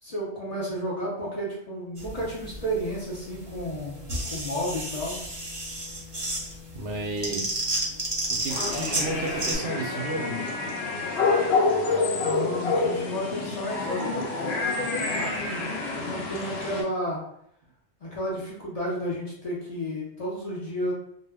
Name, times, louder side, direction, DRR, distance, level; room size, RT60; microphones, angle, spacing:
voice 1, 0.0-4.0 4.3-5.2 12.2-17.2 18.0-20.9, equal, 40° left, -6 dB, 0.6 m, -32 dB
sound 1, 2.0-9.6, right 1 dB, 25° right, 0.6 m, -32 dB
voice 2, 6.7-7.7 8.3-10.4, right 2 dB, 65° right, -1 dB, 0.7 m, -32 dB
sound 2, 8.5-16.8, left 3 dB, 70° left, 0.8 m, -27 dB
2.1 x 2.1 x 3.3 m, 0.71 s
omnidirectional pair, 1.2 m